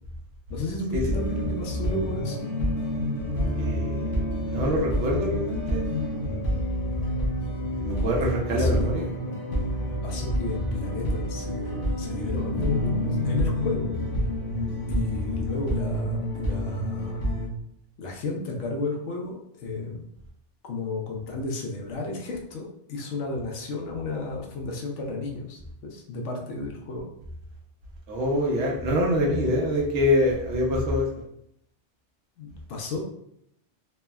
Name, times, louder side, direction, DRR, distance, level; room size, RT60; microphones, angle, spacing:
voice 1, 0.5-2.4 8.2-8.9 10.0-13.9 14.9-17.2 18.0-20.0 20.6-27.1 32.4-33.0, left 2 dB, 80° left, 1 dB, 0.9 m, -33 dB
sound 1, 1.1-17.5, equal, 55° left, 0.8 m, -28 dB
voice 2, 3.6-4.2 4.5-5.8 7.8-9.1 28.1-31.1, left 1 dB, 75° right, -1 dB, 1.0 m, -24 dB
3.3 x 2.1 x 2.2 m, 0.74 s
omnidirectional pair, 1.2 m